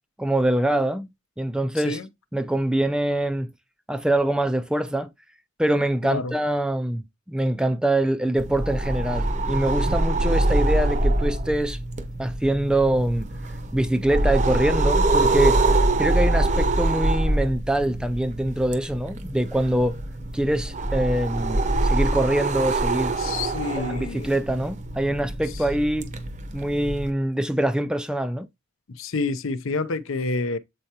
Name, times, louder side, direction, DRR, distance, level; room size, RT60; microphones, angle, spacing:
voice 1, 0.2-1.1 1.4-2.0 2.3-3.5 3.9-5.1 5.6-7.0 7.3-11.8 12.2-13.3 13.7-15.6 16.0-20.0 20.3-23.2 23.9-26.1 26.5-28.5, right 1 dB, 5° right, 0.3 m, -24 dB
voice 2, 1.8-2.1 6.0-6.4 23.2-24.3 28.9-30.6, left 3 dB, 75° left, 0.6 m, -28 dB
sound 1, 8.4-27.1, right 2 dB, 35° right, 0.7 m, -24 dB
7.7 x 4.5 x 2.8 m
head